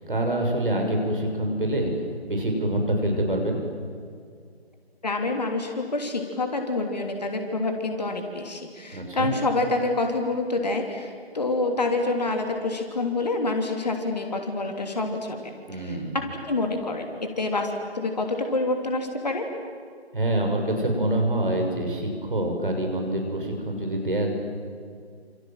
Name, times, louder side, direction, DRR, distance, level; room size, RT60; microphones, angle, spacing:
voice 1, 0.1-1.9 2.2-3.6 8.9-9.3 15.7-16.2 20.1-24.3, right 1 dB, 55° right, 3 dB, 6.7 m, -26 dB
voice 2, 5.0-15.4 15.8-17.1 17.4-19.5, left 2 dB, 40° left, 4 dB, 3.2 m, -27 dB
28.0 x 27.5 x 7.7 m, 2.2 s
figure-of-eight pair, 160°, 33 cm